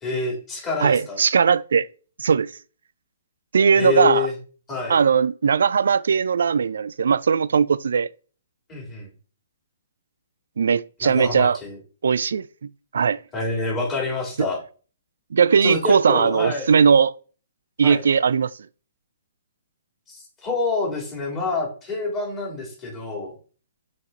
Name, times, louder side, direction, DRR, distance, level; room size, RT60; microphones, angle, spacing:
voice 1, 0.0-1.2 3.7-4.3 4.7-5.0 8.7-9.1 11.0-11.8 13.3-14.6 15.6-16.7 17.8-18.0 20.1-23.3, left 3 dB, 20° left, 3.4 m, -27 dB
voice 2, 0.8-1.9 2.2-2.5 3.5-4.3 4.9-8.1 10.6-11.6 12.0-12.5 12.9-13.2 15.3-17.1 17.8-18.5, right 6 dB, 65° right, 0.3 m, -19 dB
5.8 x 4.6 x 4.0 m
figure-of-eight pair, 120°, 0 cm